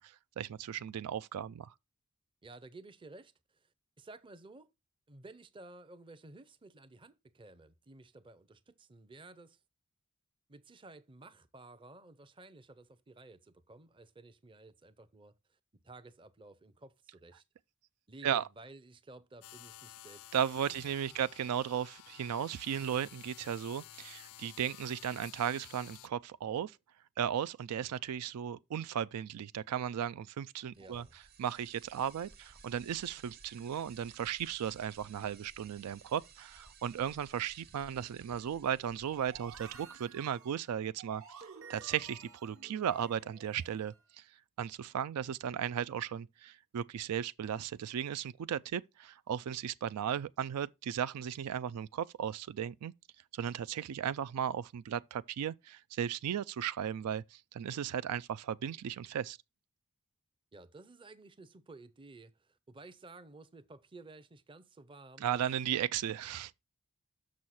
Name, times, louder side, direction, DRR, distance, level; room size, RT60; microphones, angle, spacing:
voice 1, 0.0-1.7 18.2-18.4 20.3-26.8 27.2-31.1 31.4-41.2 41.7-44.2 44.6-52.9 53.3-59.4 65.2-66.5, right 9 dB, 90° right, 0.4 m, -36 dB
voice 2, 2.4-3.7 4.0-4.7 5.1-9.6 10.5-15.6 15.8-17.4 18.1-20.3 20.7-21.2 30.8-31.2 60.5-65.4, right 2 dB, 20° right, 0.5 m, -54 dB
sound 1, 19.4-26.1, left 13 dB, 80° left, 0.4 m, -53 dB
sound 2, 30.7-39.8, right 5 dB, 45° right, 1.1 m, -58 dB
sound 3, 39.1-44.0, right 6 dB, 65° right, 1.2 m, -53 dB
6.4 x 6.3 x 4.2 m
head